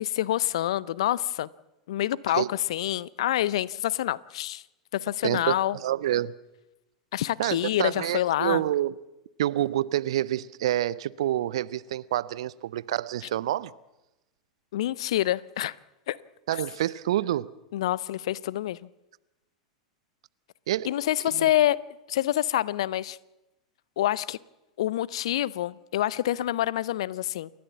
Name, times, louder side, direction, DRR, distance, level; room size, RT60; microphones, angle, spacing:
voice 1, 0.0-1.5 1.9-4.6 4.9-5.8 7.1-8.6 14.7-15.8 16.1-16.2 17.7-18.8 20.8-21.8 22.1-23.2 24.0-24.4 24.8-27.5, left 13 dB, 65° left, 0.6 m, -27 dB
voice 2, 5.2-6.3 7.4-9.0 9.4-13.7 16.5-17.5 20.7-20.9 21.3-21.5, right 13 dB, 65° right, 0.6 m, -27 dB
28.5 x 13.0 x 7.2 m
figure-of-eight pair, 90°, 3 cm